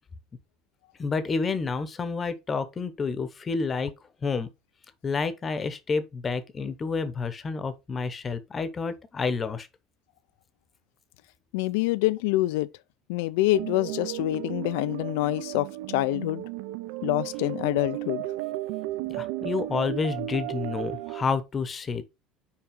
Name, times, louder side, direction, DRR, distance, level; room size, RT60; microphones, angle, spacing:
voice 1, 1.0-3.9 4.2-4.5 5.0-9.7 19.1-22.1, left 4 dB, 15° left, 0.8 m, -29 dB
voice 2, 11.5-12.7 13.1-16.4 17.0-18.2, left 18 dB, 80° left, 0.4 m, -26 dB
sound 1, 13.5-21.2, right 17 dB, 70° right, 0.6 m, -34 dB
5.7 x 4.9 x 5.3 m
cardioid pair, 180°, 0 cm